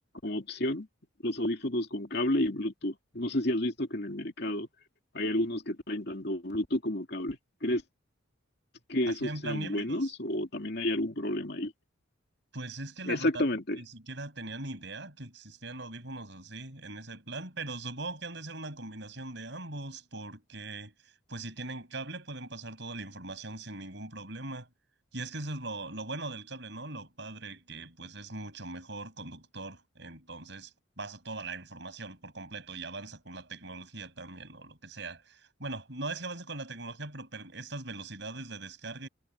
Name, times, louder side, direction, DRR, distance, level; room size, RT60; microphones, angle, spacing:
voice 1, 0.2-0.9 1.2-4.7 5.1-7.8 8.9-11.7 13.0-13.8, left 1 dB, 55° left, 2.6 m, -31 dB
voice 2, 9.2-10.1 12.5-13.4 13.9-24.7 25.1-39.1, right 2 dB, 60° right, 7.3 m, -40 dB
head